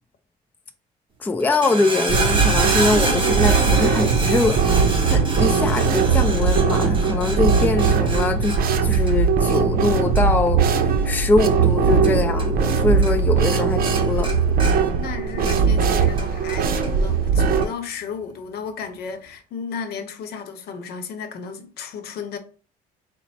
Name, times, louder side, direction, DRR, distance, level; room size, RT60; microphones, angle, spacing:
voice 1, 1.2-8.6 8.8-14.3, left 3 dB, 10° left, 0.4 m, -23 dB
sound 1, 1.4-12.8 13.0-13.6 13.9-15.8 16.2-16.9 17.6-17.7, right 3 dB, 30° right, 0.9 m, -29 dB
sound 2, 2.1-17.7, right 5 dB, 60° right, 0.6 m, -19 dB
voice 2, 15.0-22.4, left 6 dB, 70° left, 0.8 m, -33 dB
4.1 x 2.1 x 4.1 m
cardioid pair, 110°, 17 cm